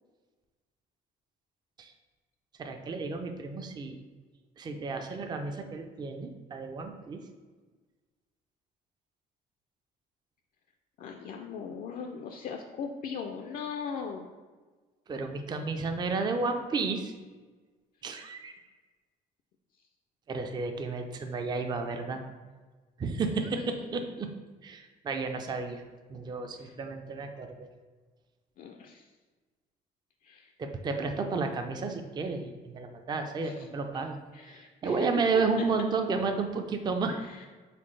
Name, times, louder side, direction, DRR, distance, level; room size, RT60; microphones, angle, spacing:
voice 1, 2.6-4.0 4.6-7.2 15.1-17.1 18.0-18.5 20.3-22.2 23.0-24.3 24.6-25.8 26.1-27.7 30.6-34.2 34.4-37.2, right 4 dB, 25° right, 5 dB, 0.4 m, -32 dB
voice 2, 11.0-14.3 23.4-24.0 26.6-26.7 28.6-29.0 30.2-30.5 33.4-33.5 34.3-35.2 37.2-37.5, left 6 dB, 55° left, 3 dB, 0.4 m, -40 dB
4.1 x 3.5 x 3.2 m, 1.3 s
cardioid pair, 110°, 17 cm